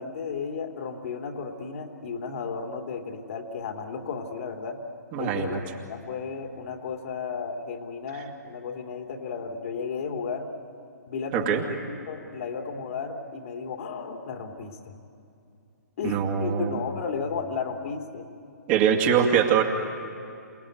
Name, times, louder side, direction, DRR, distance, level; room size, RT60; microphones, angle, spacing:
voice 1, 0.0-4.8 5.2-5.6 5.9-10.5 11.1-14.9 16.0-18.3, left 5 dB, 50° left, 3 dB, 2.6 m, -34 dB
voice 2, 5.1-5.6 8.1-8.2 11.3-11.6 16.0-16.8 18.7-19.6, right 8 dB, 30° right, 2 dB, 2.5 m, -23 dB
28.0 x 18.5 x 9.4 m, 2.5 s
figure-of-eight pair, 130°, 10 cm